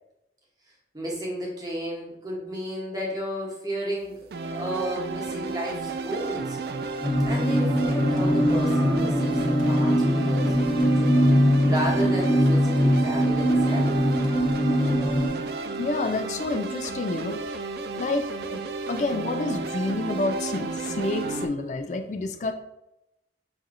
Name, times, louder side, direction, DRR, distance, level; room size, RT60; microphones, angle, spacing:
voice 1, 0.9-4.1 4.5-6.6 7.2-11.2 11.6-13.9, right 1 dB, 20° right, -3 dB, 0.9 m, -33 dB
sound 1, 4.3-21.5, right 4 dB, 60° right, 0.3 m, -32 dB
sound 2, 7.0-15.3, equal, 25° left, 1.1 m, -22 dB
voice 2, 15.8-17.6 18.0-18.6 18.9-22.5, left 3 dB, 40° left, 7 dB, 0.4 m, -29 dB
5.9 x 2.7 x 2.5 m, 0.88 s
head